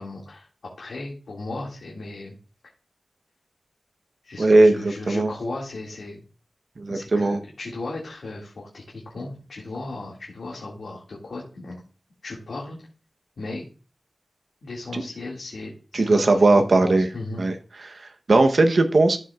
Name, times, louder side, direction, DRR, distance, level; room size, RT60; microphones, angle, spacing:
voice 1, 0.0-2.3 4.2-6.2 6.9-8.8 9.1-11.7 12.2-12.8 13.4-13.7 14.6-17.4, left 2 dB, 85° left, -3 dB, 2.1 m, -36 dB
voice 2, 4.4-5.3 6.8-7.4 14.9-15.0 15.9-17.1 17.4-17.5 17.8-19.2, right 2 dB, 60° right, 6 dB, 0.9 m, -18 dB
13.5 x 7.6 x 2.4 m, 0.37 s
wide cardioid pair, 105°, 0 cm